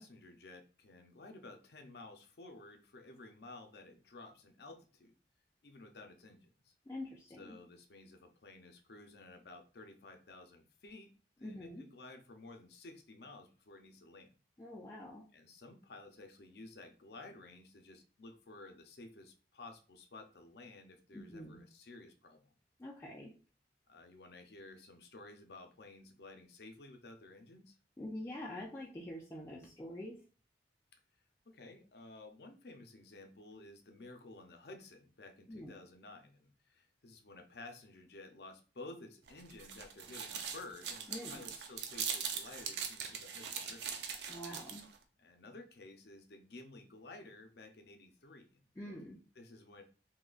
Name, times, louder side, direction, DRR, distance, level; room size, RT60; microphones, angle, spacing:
voice 1, 0.0-5.1 5.6-6.7 7.4-11.1 11.4-14.3 15.3-22.5 23.9-27.8 30.9-31.0 31.5-44.0 45.2-48.7 49.4-49.8, left 2 dB, 65° left, 5 dB, 0.6 m, -53 dB
voice 2, 6.9-7.6 11.4-11.8 14.6-15.2 21.1-21.6 22.8-23.3 28.0-30.2 35.5-35.7 41.1-41.5 44.3-44.8 48.8-49.2, left 1 dB, 15° left, -4 dB, 0.4 m, -45 dB
sound 1, 39.3-45.0, right 7 dB, 75° right, 0.5 m, -41 dB
3.8 x 2.8 x 2.3 m, 0.37 s
head